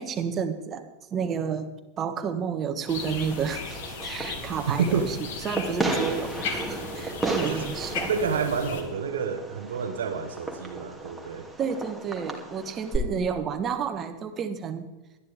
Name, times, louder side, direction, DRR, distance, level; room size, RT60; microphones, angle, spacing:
voice 1, 0.0-1.7 2.0-5.2 5.4-8.1 11.6-14.9, right 7 dB, 30° right, 8 dB, 1.4 m, -31 dB
sound 1, 2.9-8.8, left 5 dB, 55° left, 2.3 m, -36 dB
Fireworks, 3.0-13.0, right 2 dB, ahead, 2.6 m, -34 dB
voice 2, 4.7-5.1 7.4-7.7 8.1-11.5, right 6 dB, 65° right, 5 dB, 1.2 m, -29 dB
19.0 x 12.5 x 3.6 m, 1.1 s
figure-of-eight pair, 90°, 0 cm